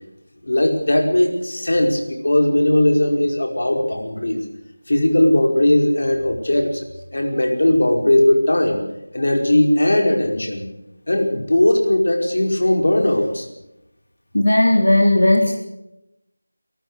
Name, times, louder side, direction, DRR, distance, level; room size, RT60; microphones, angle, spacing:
voice 1, 0.4-4.4 4.9-6.9 7.1-8.8 9.1-10.7 11.1-13.5, left 1 dB, 60° left, 2 dB, 5.1 m, -18 dB
voice 2, 14.3-15.5, left 1 dB, 90° left, 2 dB, 3.8 m, -15 dB
23.5 x 14.0 x 8.3 m, 0.90 s
figure-of-eight pair, 175°, 0 cm